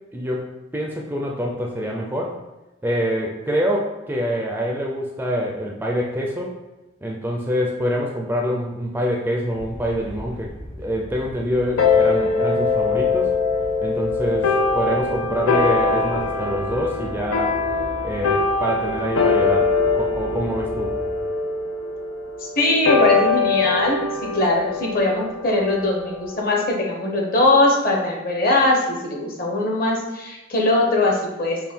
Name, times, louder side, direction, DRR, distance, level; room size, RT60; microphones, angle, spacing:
voice 1, 0.1-2.4 2.8-6.6 7.0-10.5 10.8-13.3 13.8-17.6 18.0-20.9, equal, 10° right, -1 dB, 0.4 m, -25 dB
sound 1, 9.5-21.2, equal, 65° left, 1.1 m, -39 dB
sound 2, 11.8-26.5, left 4 dB, 90° left, 0.5 m, -22 dB
voice 2, 22.4-31.7, left 2 dB, 45° left, 0 dB, 0.9 m, -21 dB
5.4 x 2.3 x 4.3 m, 1.0 s
head